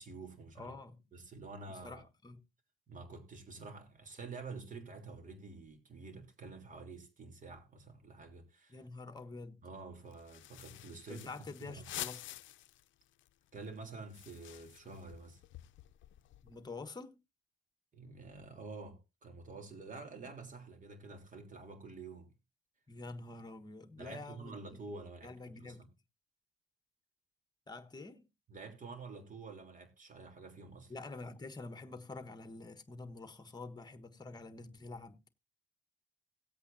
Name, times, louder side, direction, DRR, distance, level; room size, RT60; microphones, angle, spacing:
voice 1, 0.0-0.7 1.1-2.0 2.9-8.8 9.6-11.3 11.6-11.9 13.5-15.4 17.9-22.3 24.0-25.9 28.5-30.9, right 3 dB, 40° right, 3.4 m, -48 dB
voice 2, 0.6-1.0 1.7-2.4 8.7-9.6 11.1-12.3 16.4-17.2 22.9-24.8 25.2-25.8 27.7-28.3 30.9-35.3, left 3 dB, 20° left, 1.4 m, -47 dB
sound 1, 10.1-12.9 13.2-13.3 13.5-16.7, left 14 dB, 75° left, 0.6 m, -48 dB
17.5 x 8.2 x 2.7 m
cardioid pair, 90°, 20 cm